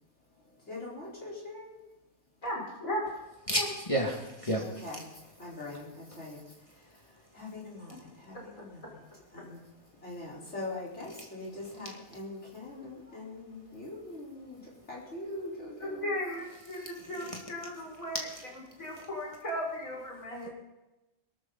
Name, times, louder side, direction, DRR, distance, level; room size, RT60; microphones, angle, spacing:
voice 1, 0.3-1.8 4.6-9.0 9.3-9.7 10.0-16.2, left 2 dB, 55° left, -4 dB, 4.9 m, -43 dB
voice 2, 2.4-3.0 3.5-3.6 16.0-18.3 18.8-20.5, equal, 70° left, -4 dB, 6.7 m, -36 dB
voice 3, 3.5-4.8 17.0-17.4 20.4-20.5, right 1 dB, 25° left, -1 dB, 2.1 m, -31 dB
22.5 x 13.0 x 4.1 m, 0.99 s
omnidirectional pair, 1.4 m